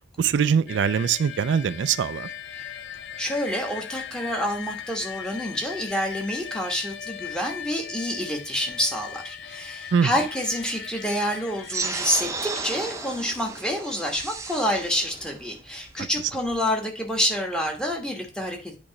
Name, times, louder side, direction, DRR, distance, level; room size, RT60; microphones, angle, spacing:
voice 1, 0.2-2.3 9.9-10.1, right 7 dB, 70° right, 0.3 m, -22 dB
sound 1, 0.7-13.1, left 8 dB, 70° left, 0.5 m, -39 dB
voice 2, 3.2-18.7, equal, 5° left, 1.3 m, -28 dB
sound 2, 11.6-16.6, right 3 dB, 15° right, 0.6 m, -34 dB
8.6 x 3.0 x 5.7 m
head